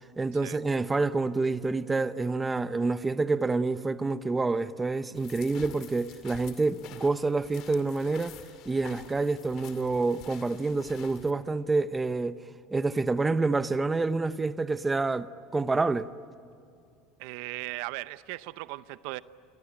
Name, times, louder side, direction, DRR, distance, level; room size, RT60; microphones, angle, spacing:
voice 1, 0.2-8.4 8.7-12.4 12.7-16.1, right 3 dB, 15° right, 0.7 m, -28 dB
sound 1, 5.1-11.3, left 10 dB, 55° left, 2.6 m, -49 dB
voice 2, 17.2-19.2, right 19 dB, 75° right, 0.7 m, -37 dB
28.5 x 24.0 x 8.7 m
supercardioid pair, 135°, 0 cm